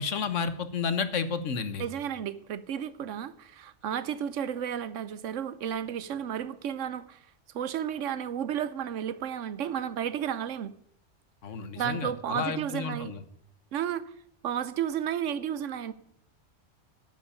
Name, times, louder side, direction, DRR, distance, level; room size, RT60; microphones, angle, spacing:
voice 1, 0.0-1.9 11.4-13.2, left 5 dB, 90° left, 11 dB, 1.4 m, -31 dB
voice 2, 1.8-7.2 7.5-10.7 11.7-13.1 13.7-14.0 14.4-15.9, right 9 dB, 90° right, 16 dB, 1.1 m, -32 dB
9.2 x 8.3 x 8.6 m, 0.73 s
omnidirectional pair, 1.2 m